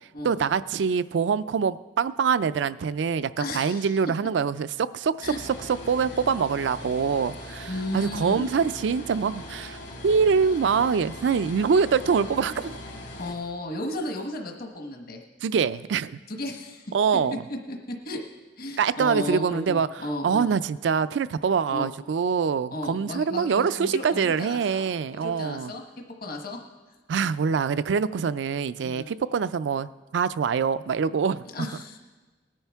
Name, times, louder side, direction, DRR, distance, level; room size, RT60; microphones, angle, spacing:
voice 1, 0.2-12.7 15.4-16.2 16.9-17.4 18.8-19.9 20.2-25.7 27.1-31.8, right 6 dB, 75° right, 15 dB, 0.4 m, -25 dB
voice 2, 3.4-3.9 5.2-5.4 7.7-8.5 13.2-15.2 16.3-16.8 17.5-18.2 18.6-20.5 21.7-21.9 22.7-24.8 25.1-25.8 26.2-26.6 28.8-29.1 31.5-32.0, left 1 dB, 55° left, 2 dB, 1.2 m, -34 dB
sound 1, 5.2-13.3, left 1 dB, 75° left, 2.9 m, -40 dB
19.5 x 10.0 x 3.5 m, 1.3 s
head